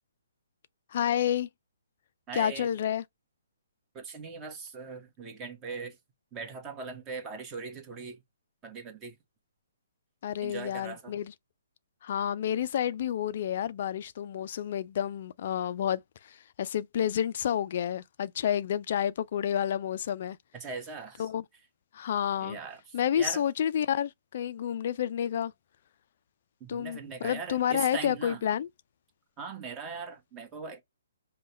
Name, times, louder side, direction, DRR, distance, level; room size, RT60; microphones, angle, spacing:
voice 1, 0.9-1.5 2.3-3.0 10.2-11.3 12.0-20.4 21.2-21.4 21.9-22.6 22.9-25.5 26.7-28.7, left 9 dB, 50° left, 0.4 m, -30 dB
voice 2, 2.3-2.7 3.9-6.0 6.3-8.2 8.6-9.2 10.4-11.1 20.5-21.3 22.4-23.4 26.6-28.4 29.4-30.8, right 4 dB, 20° right, 1.3 m, -40 dB
5.3 x 2.3 x 3.1 m
figure-of-eight pair, 135°, 0 cm